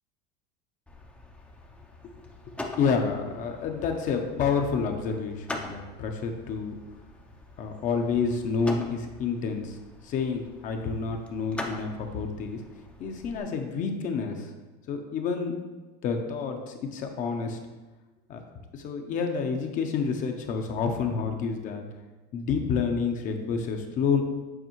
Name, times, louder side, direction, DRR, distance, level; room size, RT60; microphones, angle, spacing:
sound 1, 0.9-13.4, left 1 dB, 5° left, 0.5 m, -43 dB
voice 1, 2.6-6.7 7.6-9.8 10.0-12.6 13.0-14.5 14.9-15.5 16.0-17.6 18.3-18.4 18.7-21.9 22.3-24.2, left 5 dB, 40° left, 4 dB, 0.7 m, -29 dB
7.9 x 4.2 x 3.1 m, 1.2 s
supercardioid pair, 135°, 21 cm